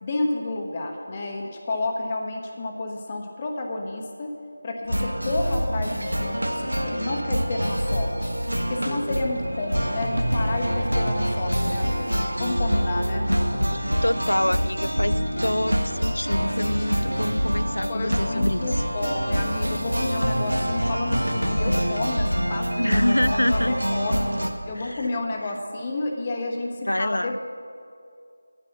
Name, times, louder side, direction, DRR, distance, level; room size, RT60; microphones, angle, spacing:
voice 1, 0.0-4.4 4.6-8.3 8.7-13.8 16.6-17.3 17.9-24.2 24.7-27.4, left 2 dB, 20° left, 1 dB, 1.1 m, -30 dB
sound 1, 4.9-24.5, equal, 80° right, 1.2 m, -25 dB
voice 2, 14.0-18.8 22.8-23.8 24.7-25.1 26.8-27.4, left 1 dB, 75° left, 18 dB, 0.3 m, -26 dB
10.5 x 9.8 x 7.1 m, 2.4 s
figure-of-eight pair, 165°, 0 cm